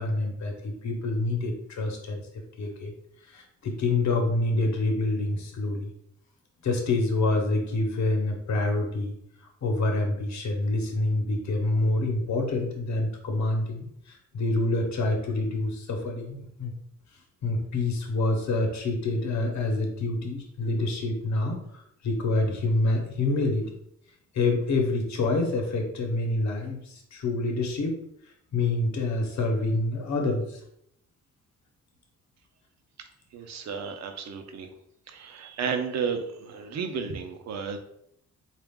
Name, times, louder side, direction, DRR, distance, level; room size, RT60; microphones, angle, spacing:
voice 1, 0.0-2.2 2.6-2.9 3.3-5.9 6.6-9.1 9.6-16.7 17.4-23.7 24.3-28.0 28.5-30.6, left 2 dB, 65° left, 3 dB, 0.9 m, -27 dB
voice 2, 33.0-34.7 35.1-37.8, right 6 dB, 60° right, 6 dB, 0.6 m, -33 dB
3.9 x 2.4 x 3.6 m, 0.74 s
cardioid pair, 130°, 31 cm